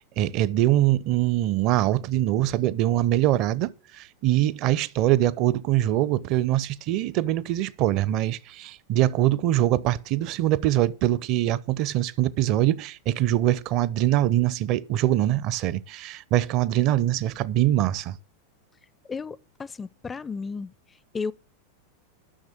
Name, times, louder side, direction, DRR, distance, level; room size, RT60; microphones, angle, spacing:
voice 1, 0.0-18.1, right 13 dB, 40° right, 0.6 m, -23 dB
voice 2, 19.1-20.7 21.1-21.3, left 5 dB, 15° left, 0.4 m, -33 dB
10.0 x 6.5 x 7.6 m
figure-of-eight pair, 90°, 0 cm